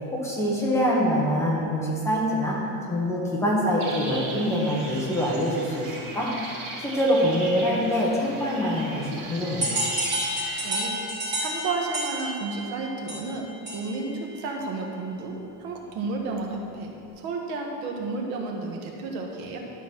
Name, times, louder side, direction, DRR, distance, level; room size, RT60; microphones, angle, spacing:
voice 1, 0.1-2.6 2.9-6.3 6.8-9.9, equal, 5° left, -5 dB, 1.2 m, -25 dB
sound 1, 3.8-10.8, right 2 dB, 60° right, 2.1 m, -38 dB
sound 2, 9.6-14.1, right 1 dB, 25° right, 2.2 m, -30 dB
voice 2, 10.6-11.0 11.4-13.5 13.7-19.6, right 3 dB, 80° right, 1 dB, 1.4 m, -32 dB
12.5 x 4.1 x 6.0 m, 2.7 s
cardioid pair, 180°, 37 cm